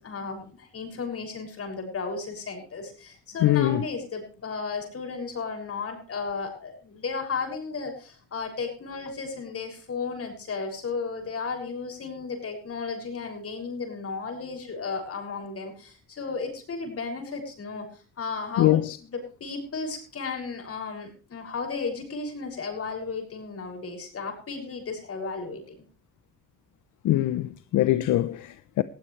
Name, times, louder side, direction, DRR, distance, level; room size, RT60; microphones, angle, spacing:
voice 1, 0.0-17.9 18.2-25.8, left 4 dB, 50° left, 6.6 m, -34 dB
voice 2, 3.4-3.8 18.6-19.0 27.0-28.8, left 14 dB, 80° left, 0.8 m, -23 dB
19.5 x 15.5 x 3.3 m
cardioid pair, 90°, 30 cm